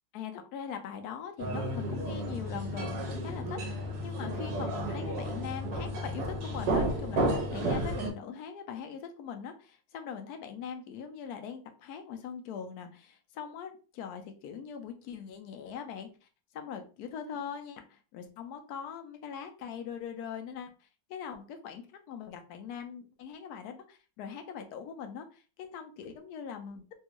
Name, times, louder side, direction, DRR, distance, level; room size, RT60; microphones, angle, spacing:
voice 1, 0.1-3.6 4.0-16.1 16.5-26.8, left 7 dB, 70° left, 6 dB, 0.9 m, -41 dB
sound 1, 1.4-8.1, right 1 dB, 65° right, 1.3 m, -32 dB
3.4 x 2.3 x 2.9 m, 0.35 s
omnidirectional pair, 2.0 m